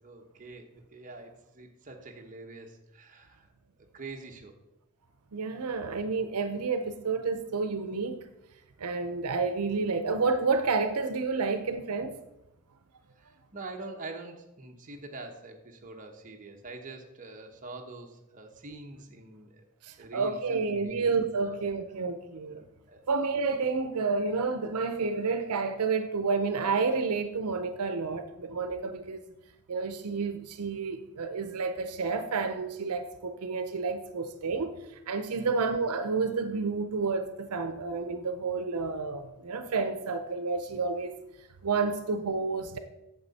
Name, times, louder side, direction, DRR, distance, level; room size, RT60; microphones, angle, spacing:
voice 1, 0.0-3.5 3.9-4.6 13.2-19.6 20.0-21.1 21.4-21.9 22.6-23.1 35.4-35.7, right 3 dB, 35° right, 1.0 m, -45 dB
voice 2, 5.3-8.3 8.8-12.2 19.8-22.6 23.1-29.3 29.7-34.8 35.1-41.2 41.6-42.8, right 4 dB, 90° right, 0.6 m, -30 dB
8.7 x 6.7 x 4.1 m
head